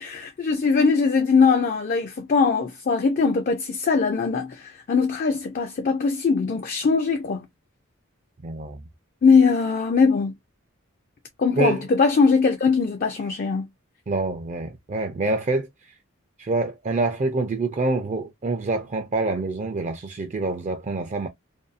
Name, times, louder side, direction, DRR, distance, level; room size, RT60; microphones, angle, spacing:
voice 1, 0.0-7.5 9.2-10.3 11.4-13.6, left 5 dB, 40° left, 0.3 m, -21 dB
voice 2, 8.4-8.8 11.6-11.9 14.1-15.7 16.4-21.3, right 3 dB, 35° right, 0.4 m, -26 dB
2.6 x 2.2 x 2.4 m
head